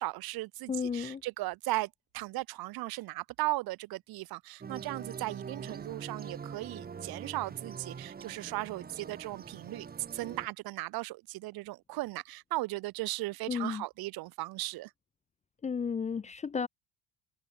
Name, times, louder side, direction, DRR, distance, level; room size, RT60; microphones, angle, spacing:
voice 1, 0.0-9.9 10.1-14.9, right 19 dB, 80° right, 2.6 m, -37 dB
voice 2, 0.7-1.2 13.5-13.8 15.6-16.7, left 6 dB, 20° left, 0.6 m, -33 dB
sound 1, 4.6-10.5, right 6 dB, 25° right, 3.5 m, -44 dB
cardioid pair, 160°, 36 cm